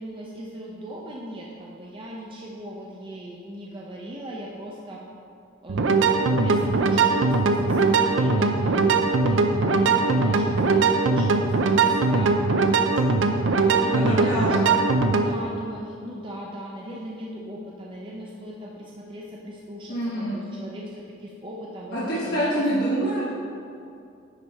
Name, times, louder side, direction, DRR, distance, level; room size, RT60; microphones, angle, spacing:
voice 1, 0.0-5.0 5.6-6.0 6.4-12.4 13.3-14.8 15.1-22.7, equal, 25° right, -3 dB, 0.6 m, -38 dB
sound 1, 5.7-15.3, right 3 dB, 75° right, 0.5 m, -21 dB
voice 2, 13.9-14.6 19.9-20.4 21.9-23.2, right 1 dB, 55° left, -10 dB, 1.4 m, -26 dB
10.0 x 4.8 x 4.2 m, 2.5 s
head